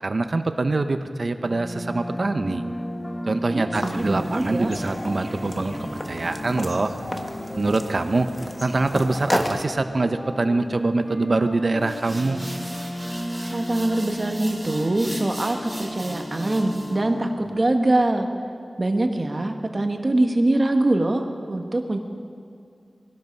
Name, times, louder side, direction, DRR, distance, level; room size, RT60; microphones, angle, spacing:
voice 1, 0.0-2.7 3.3-6.9 7.5-8.3 8.6-12.4, right 3 dB, 60° right, 9 dB, 0.9 m, -24 dB
sound 1, 1.4-17.6, equal, 10° left, 3.4 m, -35 dB
voice 2, 3.5-4.7 13.5-18.3 18.8-22.0, right 2 dB, 45° right, 4 dB, 1.5 m, -23 dB
sound 2, 3.7-9.7, left 1 dB, 30° left, 1.4 m, -32 dB
sound 3, 11.8-17.0, right 1 dB, 20° right, 5.3 m, -39 dB
21.0 x 12.0 x 5.4 m, 2.3 s
wide cardioid pair, 50°, 0 cm